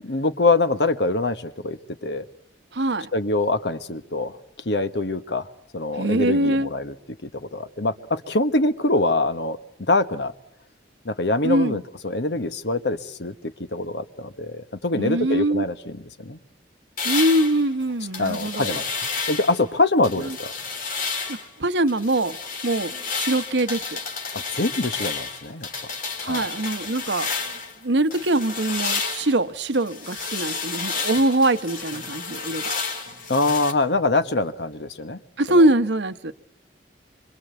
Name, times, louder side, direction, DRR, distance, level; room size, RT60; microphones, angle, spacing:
voice 1, 0.1-2.2 3.1-4.4 4.6-5.5 5.7-6.9 7.2-9.6 9.9-10.3 11.0-13.3 13.7-16.4 18.2-20.5 24.3-25.7 26.2-26.5 33.3-35.2, left 2 dB, 75° left, 1.4 m, -24 dB
voice 2, 2.7-3.1 6.0-6.7 11.4-11.8 14.9-15.6 17.0-18.8 20.2-20.4 21.3-22.4 22.6-24.0 26.2-27.3 27.8-32.6 35.4-36.3, right 1 dB, 85° right, 1.1 m, -23 dB
sound 1, 17.0-19.6 20.0-21.5 21.9-27.8 28.1-33.7, left 5 dB, 50° left, 3.9 m, -31 dB
26.0 x 26.0 x 8.2 m
head